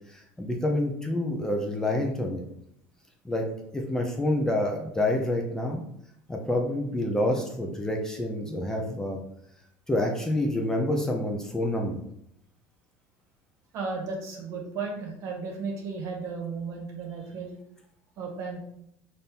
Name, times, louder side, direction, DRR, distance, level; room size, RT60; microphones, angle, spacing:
voice 1, 0.1-2.4 3.2-3.5 3.7-5.8 6.3-9.2 9.9-12.0, left 1 dB, 10° left, 1 dB, 0.6 m, -28 dB
voice 2, 13.7-17.5 18.2-18.6, right 4 dB, 55° right, 1 dB, 1.2 m, -34 dB
4.2 x 2.7 x 3.6 m, 0.73 s
supercardioid pair, 110°, 6 cm